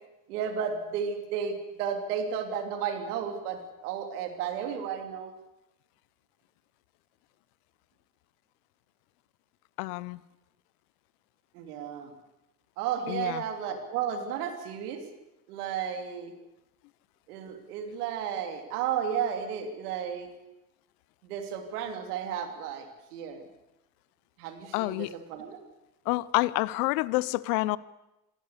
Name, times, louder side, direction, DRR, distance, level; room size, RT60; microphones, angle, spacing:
voice 1, 0.3-5.3 11.5-12.1 12.8-15.0 15.5-16.3 17.3-20.3 21.2-23.4 24.4-25.6, right 8 dB, 85° right, 6 dB, 3.1 m, -33 dB
voice 2, 9.8-10.2 13.1-13.4 24.7-25.1 26.1-27.8, left 20 dB, 80° left, 20 dB, 0.8 m, -28 dB
26.5 x 15.0 x 8.3 m, 0.95 s
hypercardioid pair, 65°, 45 cm